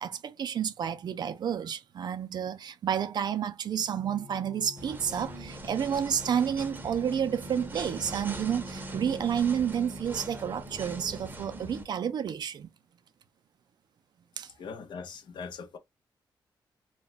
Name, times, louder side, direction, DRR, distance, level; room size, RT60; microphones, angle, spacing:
voice 1, 0.0-12.7 14.4-14.5, right 8 dB, 60° right, 0.4 m, -30 dB
sound 1, 4.0-11.3, left 5 dB, 20° left, 0.5 m, -48 dB
sound 2, 4.8-11.8, right 2 dB, 25° right, 0.7 m, -42 dB
voice 2, 14.6-15.8, left 5 dB, 70° left, 0.6 m, -41 dB
2.2 x 2.2 x 3.8 m
cardioid pair, 100°, 8 cm